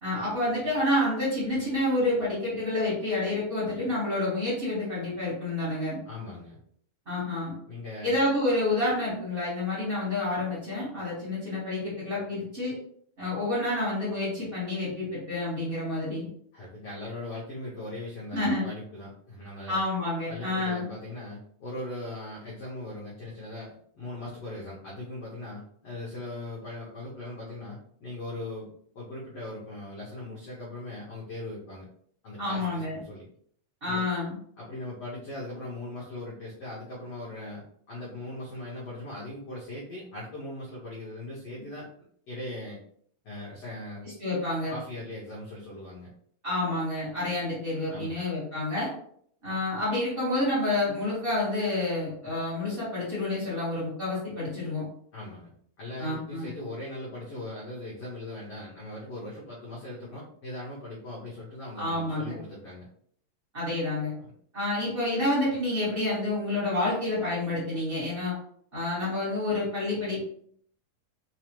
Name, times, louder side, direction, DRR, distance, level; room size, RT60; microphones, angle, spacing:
voice 1, 0.0-6.0 7.1-7.6 8.0-12.7 13.2-16.3 18.3-18.7 19.7-20.9 32.4-33.0 33.8-34.4 44.0-44.7 46.4-48.9 49.4-54.8 56.0-56.5 61.8-62.4 63.5-64.1 64.5-68.3 68.7-70.2, left 2 dB, 60° right, -9 dB, 0.5 m, -29 dB
voice 2, 6.0-6.6 7.7-8.1 16.5-19.8 20.3-31.9 32.2-33.2 33.8-34.0 34.6-41.9 42.3-42.8 43.2-44.1 44.7-46.1 47.9-48.2 55.1-55.5 55.8-62.9 64.2-64.3, left 1 dB, 75° left, -7 dB, 1.4 m, -39 dB
5.4 x 2.0 x 3.0 m, 0.63 s
omnidirectional pair, 4.1 m